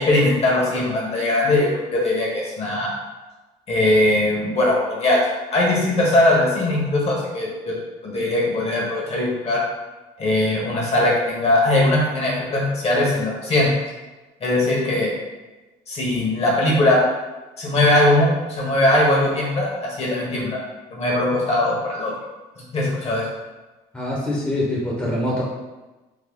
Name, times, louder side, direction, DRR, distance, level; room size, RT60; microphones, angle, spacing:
voice 1, 0.0-2.9 3.7-5.2 5.5-7.8 8.0-9.6 10.2-13.7 14.4-15.1 15.9-17.0 17.6-20.6 20.9-22.1 22.7-23.3, left 1 dB, 40° left, -3 dB, 1.1 m, -20 dB
voice 2, 23.9-25.4, left 1 dB, 5° left, -6 dB, 0.8 m, -24 dB
3.7 x 2.0 x 3.6 m, 1.1 s
cardioid pair, 110°, 17 cm